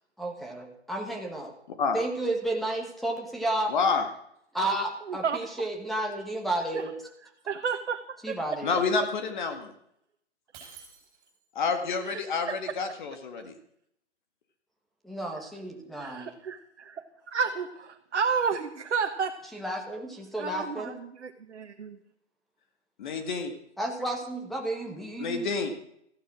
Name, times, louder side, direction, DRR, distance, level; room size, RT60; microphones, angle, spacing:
voice 1, 0.2-1.5 1.9-3.7 4.5-6.9 8.2-8.8 15.0-16.3 19.5-20.9 23.8-25.5, right 1 dB, ahead, 2 dB, 1.5 m, -32 dB
voice 2, 3.7-4.0 8.6-9.7 11.6-13.5 23.0-23.5 25.2-25.7, left 4 dB, 40° left, 7 dB, 1.9 m, -28 dB
voice 3, 5.1-5.4 6.7-6.8 7.4-8.0 8.3-8.4 12.0-12.5 16.0-19.4 20.4-22.0, right 6 dB, 70° right, 4 dB, 1.4 m, -31 dB
Shatter, 10.5-11.6, right 7 dB, 20° right, 6.3 m, -50 dB
14.5 x 11.5 x 6.3 m, 0.73 s
hypercardioid pair, 150°, 35 cm